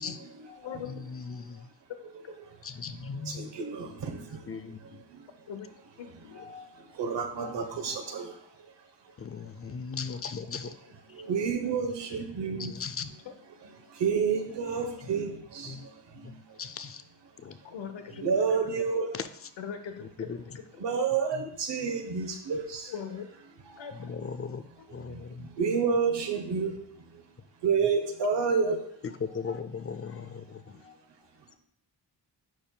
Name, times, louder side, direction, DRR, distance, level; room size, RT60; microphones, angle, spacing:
voice 1, 0.0-0.8 1.4-1.5 2.9-5.3 6.4-8.4 10.1-13.2 13.9-16.6 18.2-19.1 20.8-22.9 23.7-24.0 24.9-27.3 27.6-28.8 29.4-29.6 30.5-30.9, right 5 dB, 70° right, 4 dB, 1.0 m, -31 dB
voice 2, 0.5-0.9 2.2-2.3 5.5-5.7 6.0-6.5 13.2-13.3 17.6-18.2 18.5-18.7 19.6-20.8 22.9-23.3 23.8-24.2 24.8-24.9, left 7 dB, 85° left, 7 dB, 0.9 m, -41 dB
voice 3, 1.1-1.6 2.6-3.5 4.5-4.8 9.2-10.7 12.6-13.1 15.7-15.8 16.6-17.0 17.4-17.6 24.0-24.6 24.9-25.5 29.2-30.6, left 5 dB, 35° left, 11 dB, 0.5 m, -37 dB
10.5 x 4.5 x 2.3 m, 0.69 s
cardioid pair, 75°, 44 cm